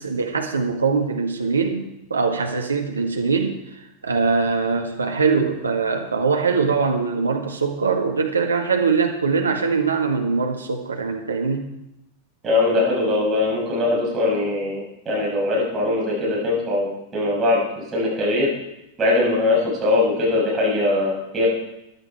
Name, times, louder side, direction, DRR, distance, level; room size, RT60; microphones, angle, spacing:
voice 1, 0.0-3.6 4.0-11.7, right 5 dB, 75° right, 3 dB, 1.8 m, -22 dB
voice 2, 12.4-17.6 17.9-18.5 19.0-21.5, left 2 dB, 20° right, -5 dB, 6.4 m, -21 dB
15.0 x 11.0 x 4.6 m, 0.86 s
figure-of-eight pair, 90°, 0 cm